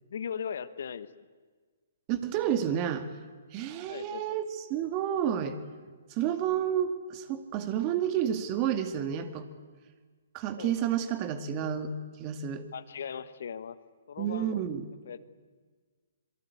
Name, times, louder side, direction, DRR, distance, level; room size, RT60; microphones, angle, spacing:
voice 1, 0.1-1.1 3.9-4.4 10.5-10.8 12.7-13.8 14.1-14.6 15.1-15.2, left 7 dB, 60° left, 14 dB, 1.2 m, -38 dB
voice 2, 2.1-3.1 3.5-4.4 4.7-5.6 6.1-9.5 10.3-11.9 12.2-12.6 14.2-14.9, right 9 dB, 30° right, 9 dB, 2.2 m, -30 dB
26.5 x 23.0 x 8.5 m, 1.5 s
figure-of-eight pair, 125°, 0 cm